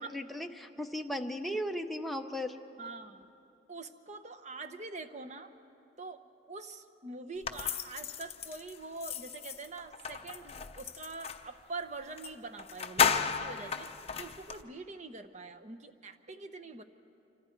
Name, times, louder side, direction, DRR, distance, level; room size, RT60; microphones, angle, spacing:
voice 1, 0.0-2.6, left 1 dB, ahead, 3 dB, 0.7 m, -36 dB
voice 2, 2.8-3.3 3.7-5.5 6.0-6.2 6.5-13.9 14.2-16.8, right 3 dB, 40° right, 9 dB, 0.9 m, -44 dB
sound 1, 7.4-11.5 12.2-12.3 12.6-14.6, left 6 dB, 35° left, 0.7 m, -34 dB
26.5 x 25.0 x 4.6 m, 2.7 s
head